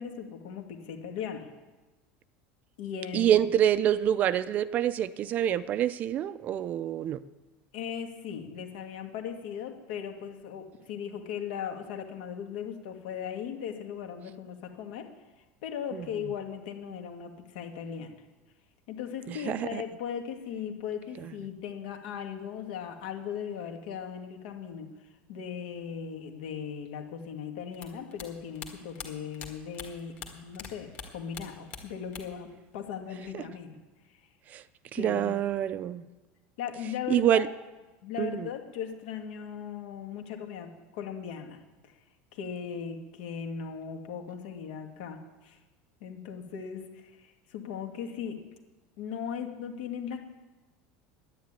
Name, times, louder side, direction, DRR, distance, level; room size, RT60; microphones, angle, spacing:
voice 1, 0.0-1.5 2.8-3.4 7.7-15.1 15.6-18.1 18.9-24.9 25.3-33.8 34.9-35.4 36.6-37.5 38.0-41.6 42.3-45.6 46.0-48.4 49.0-50.2, left 8 dB, 75° left, 4 dB, 2.1 m, -38 dB
voice 2, 3.1-7.2 15.9-16.1 19.3-19.8 21.2-21.3 33.3-33.4 34.5-34.6 34.9-36.1 37.1-37.5 38.2-38.5, right 10 dB, 30° right, 15 dB, 0.4 m, -26 dB
sound 1, 27.7-30.7 30.9-32.5 32.7-33.5, left 6 dB, 30° left, 1.8 m, -43 dB
10.5 x 10.5 x 9.0 m, 1.2 s
cardioid pair, 165°, 5 cm